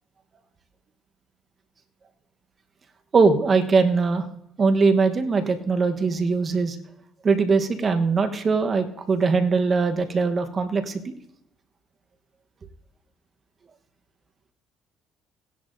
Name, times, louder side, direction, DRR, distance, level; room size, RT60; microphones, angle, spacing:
voice 1, 3.1-4.3 4.6-6.8 7.2-11.1, right 4 dB, 35° right, 7 dB, 1.0 m, -21 dB
18.0 x 10.0 x 2.6 m, 0.75 s
cardioid pair, 100°, 0 cm